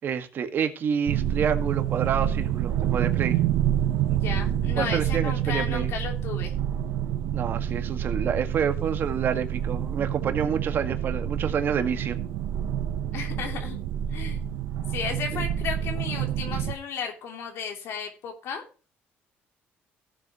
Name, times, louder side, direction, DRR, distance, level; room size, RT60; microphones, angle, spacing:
voice 1, 0.0-3.4 4.8-5.9 7.3-12.2, right 7 dB, 50° right, 1.9 m, -28 dB
sound 1, 1.1-16.7, right 10 dB, 80° right, 0.8 m, -28 dB
voice 2, 4.1-6.5 13.1-13.8 14.1-14.4 14.9-18.6, left 6 dB, 65° left, 3.1 m, -34 dB
17.5 x 7.7 x 3.1 m
cardioid pair, 105°, 5 cm